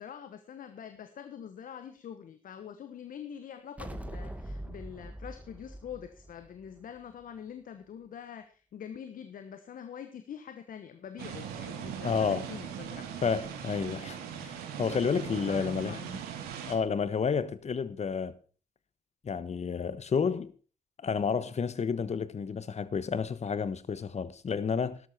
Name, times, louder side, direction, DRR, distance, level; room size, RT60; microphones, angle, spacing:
voice 1, 0.0-13.1 15.5-16.2, left 8 dB, 65° left, 1.2 m, -45 dB
sound 1, 3.8-7.2, right 1 dB, 10° right, 1.8 m, -42 dB
sound 2, 11.2-16.8, right 8 dB, 90° right, 2.1 m, -39 dB
voice 2, 12.0-12.5 13.2-16.0 16.7-18.3 19.2-20.5 21.0-25.0, left 6 dB, 45° left, 1.3 m, -30 dB
12.5 x 12.5 x 4.4 m
supercardioid pair, 50°, 15 cm